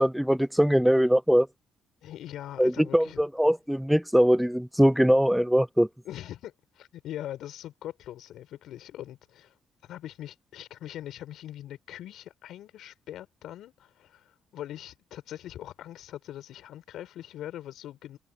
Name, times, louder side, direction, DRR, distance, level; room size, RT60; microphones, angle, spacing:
voice 1, 0.0-1.5 2.6-5.9, equal, ahead, 0.4 m, -22 dB
voice 2, 2.0-3.2 6.0-9.5 9.8-18.2, left 12 dB, 80° left, 5.4 m, -42 dB
cardioid pair, 90°, 0 cm